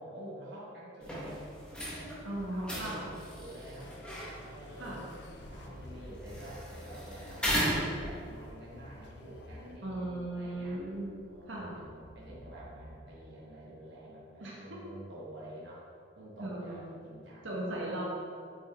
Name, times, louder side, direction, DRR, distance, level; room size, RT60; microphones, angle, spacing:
voice 1, 0.0-1.4 1.9-3.9 4.4-5.0 5.4-10.8 11.3-15.8 16.1-17.6, right 1 dB, 60° right, -7 dB, 1.4 m, -48 dB
sound 1, 1.0-8.5, equal, 5° left, 1.3 m, -37 dB
voice 2, 2.2-3.1 4.8-5.0 7.6-7.7 9.8-11.1 11.5-11.7 14.4-14.8 16.4-16.8 17.4-18.0, right 1 dB, 80° right, -4 dB, 1.6 m, -37 dB
sound 2, 3.8-9.8, left 2 dB, 60° left, 0.6 m, -54 dB
sound 3, 5.3-13.0, equal, 30° right, 1.0 m, -54 dB
7.7 x 6.0 x 3.6 m, 2.4 s
head